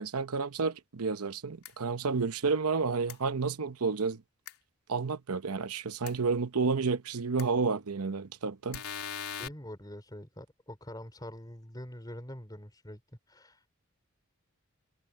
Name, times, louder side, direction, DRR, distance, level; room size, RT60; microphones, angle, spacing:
voice 1, 0.0-4.2 4.9-8.8, right 4 dB, 85° right, 0.8 m, -30 dB
sound 1, 1.6-1.7 3.1-3.2 4.5-4.6 6.1-6.2 7.4-7.5 8.7-9.5, left 8 dB, 90° left, 3.1 m, -39 dB
voice 2, 9.2-13.0 13.3-13.7, equal, 20° left, 3.5 m, -45 dB
head